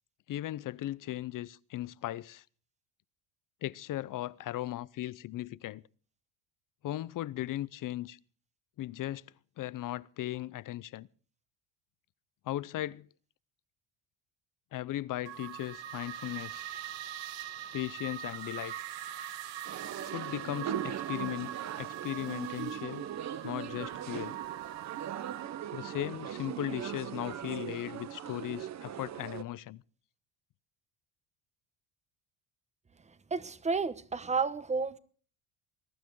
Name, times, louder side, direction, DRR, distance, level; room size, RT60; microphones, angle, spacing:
voice 1, 0.3-2.4 3.6-5.8 6.8-8.2 8.8-9.2 9.6-11.1 12.4-13.1 14.7-16.6 17.7-18.7 20.1-23.1 23.4-24.4 25.7-29.8, left 14 dB, 45° left, 0.7 m, -37 dB
sound 1, 15.3-26.0, right 12 dB, 80° right, 2.2 m, -42 dB
sound 2, 19.7-29.4, right 9 dB, 35° right, 0.9 m, -40 dB
voice 2, 33.3-35.0, right 4 dB, 15° right, 1.0 m, -31 dB
22.0 x 12.5 x 4.7 m
cardioid pair, 130°, 45 cm